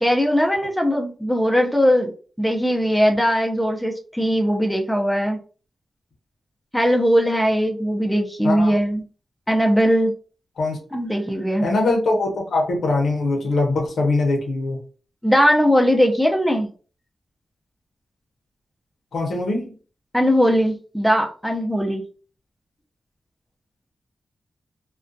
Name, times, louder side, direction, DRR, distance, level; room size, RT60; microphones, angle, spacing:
voice 1, 0.0-2.1 2.4-5.4 6.7-9.0 9.5-10.1 10.9-11.6 15.2-16.7 20.1-22.0, equal, ahead, 1 dB, 0.5 m, -19 dB
voice 2, 8.4-8.8 10.6-10.8 11.6-14.8 19.1-19.7, left 2 dB, 90° left, 1 dB, 0.7 m, -22 dB
2.4 x 2.2 x 2.5 m, 0.38 s
wide cardioid pair, 95°, 0 cm